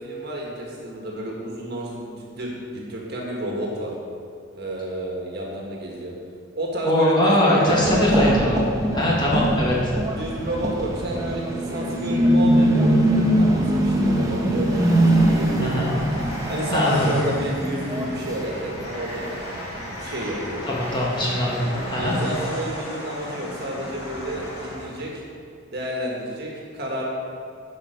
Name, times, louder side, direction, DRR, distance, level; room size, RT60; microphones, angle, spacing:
voice 1, 0.0-3.9 4.5-6.1 6.5-8.2 9.0-9.3 10.1-15.9 16.5-19.3 19.7-20.6 21.9-25.2 25.7-27.0, right 1 dB, 50° right, -2 dB, 1.7 m, -30 dB
voice 2, 6.8-9.7 15.6-15.9 16.7-17.1 20.7-22.1, left 1 dB, 20° left, -5 dB, 1.4 m, -22 dB
sound 1, 7.7-18.9 19.2-19.9 20.2-22.6, right 1 dB, 15° right, 0.9 m, -22 dB
Train, 14.6-25.1, equal, 80° left, 1.9 m, -35 dB
11.0 x 5.5 x 5.2 m, 2.3 s
head